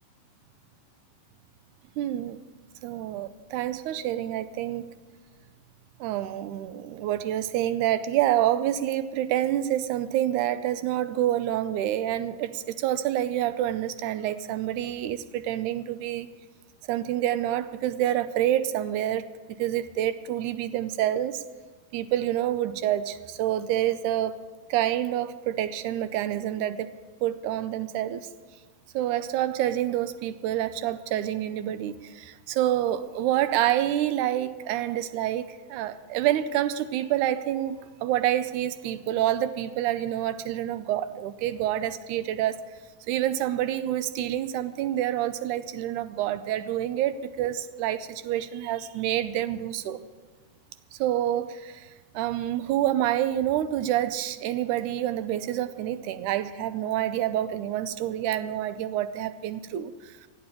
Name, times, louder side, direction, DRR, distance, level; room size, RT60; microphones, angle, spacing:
voice 1, 2.0-2.4 2.8-4.9 6.0-16.3 16.9-21.4 21.9-24.4 24.7-26.9 27.2-28.3 28.9-42.6 43.1-50.0 51.0-51.9 52.1-60.1, right 12 dB, 80° right, 1.8 m, -27 dB
15.0 x 8.7 x 8.7 m
omnidirectional pair, 4.1 m